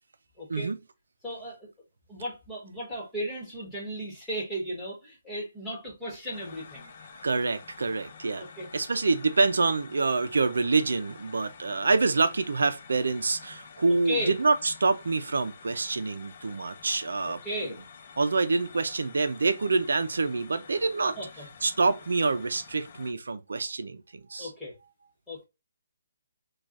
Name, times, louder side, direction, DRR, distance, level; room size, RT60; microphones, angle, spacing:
voice 1, 0.4-0.7 1.2-1.7 2.1-6.9 8.4-8.7 13.9-14.4 17.4-17.8 21.2-21.5 24.4-24.8 25.3-25.5, equal, 5° left, 1.4 m, -35 dB
sound 1, 6.3-23.1, left 6 dB, 40° left, 0.6 m, -49 dB
voice 2, 7.2-8.5 8.7-17.7 18.2-21.2 21.6-24.5, right 3 dB, 90° right, 0.5 m, -26 dB
4.5 x 2.3 x 2.5 m
hypercardioid pair, 165°, 0 cm